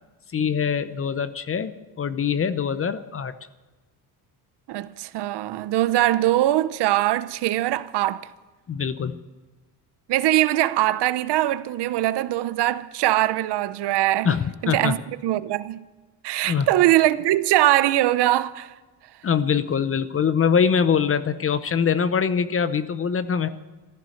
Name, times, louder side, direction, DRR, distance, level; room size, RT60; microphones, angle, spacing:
voice 1, 0.3-3.3 8.7-9.2 14.2-15.0 16.4-16.7 19.2-23.5, left 7 dB, 35° left, 0.7 m, -23 dB
voice 2, 4.7-8.3 10.1-14.3 14.6-15.9 16.2-18.7, right 15 dB, 75° right, 0.8 m, -22 dB
15.0 x 14.0 x 6.5 m
cardioid pair, 115°, 41 cm